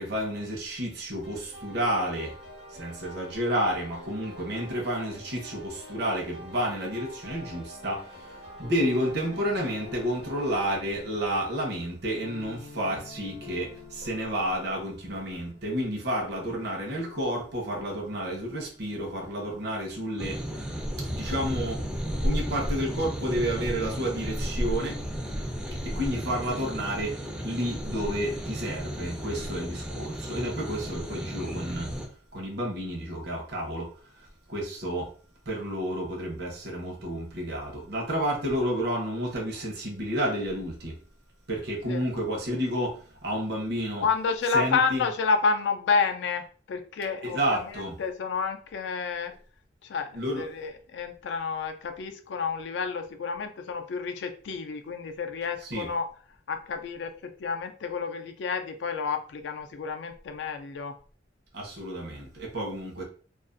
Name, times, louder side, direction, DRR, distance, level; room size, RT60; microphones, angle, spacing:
voice 1, 0.0-2.3 2.8-8.0 8.6-20.4 21.1-21.8 22.2-25.0 25.8-27.1 27.4-31.9 32.3-33.9 34.5-35.1 35.5-40.9 41.5-42.9 43.2-44.1 44.5-45.0 47.2-48.0 50.1-50.4 55.6-55.9 61.5-63.0, equal, 60° right, 0.7 m, -30 dB
sound 1, 1.2-10.8, equal, 85° right, 0.9 m, -46 dB
sound 2, 7.7-15.6, left 3 dB, 50° left, 0.7 m, -48 dB
sound 3, 20.2-32.1, equal, 5° right, 0.4 m, -33 dB
voice 2, 44.0-49.3 49.8-56.1 56.5-60.9, left 5 dB, 70° left, 0.4 m, -30 dB
2.4 x 2.4 x 2.4 m
head